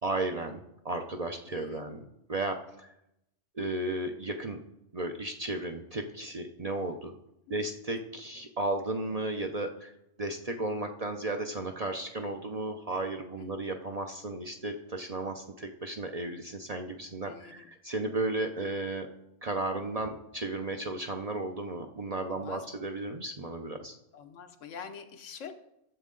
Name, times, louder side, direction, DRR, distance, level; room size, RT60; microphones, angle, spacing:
voice 1, 0.0-2.9 3.6-4.6 4.9-7.1 7.5-9.9 10.2-19.1 19.4-23.9, right 2 dB, 45° right, 5 dB, 0.5 m, -34 dB
voice 2, 1.4-1.8 7.5-7.6 13.4-13.5 17.2-17.7 22.3-22.7 24.1-25.5, left 7 dB, 85° left, 7 dB, 1.2 m, -45 dB
12.5 x 7.3 x 3.8 m, 0.84 s
omnidirectional pair, 1.3 m